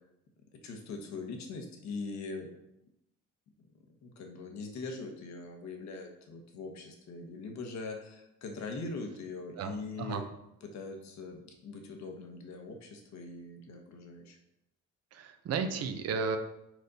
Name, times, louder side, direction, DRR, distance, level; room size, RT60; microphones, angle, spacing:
voice 1, 0.5-2.5 3.6-3.7 4.0-10.2 10.6-14.4, left 3 dB, 60° left, 3 dB, 1.3 m, -42 dB
voice 2, 15.1-16.4, right 5 dB, 55° right, 7 dB, 0.8 m, -33 dB
6.4 x 5.1 x 4.1 m, 0.84 s
cardioid pair, 135°, 31 cm